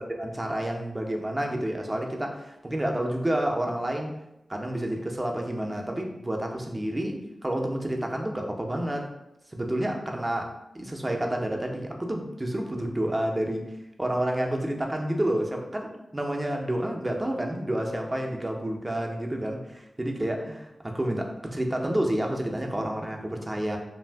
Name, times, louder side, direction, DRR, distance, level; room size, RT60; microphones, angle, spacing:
voice 1, 0.2-4.1 4.5-9.1 9.5-13.7 14.0-23.8, right 1 dB, 20° right, 2 dB, 0.5 m, -29 dB
2.5 x 2.4 x 3.4 m, 0.89 s
wide cardioid pair, 70°, 0 cm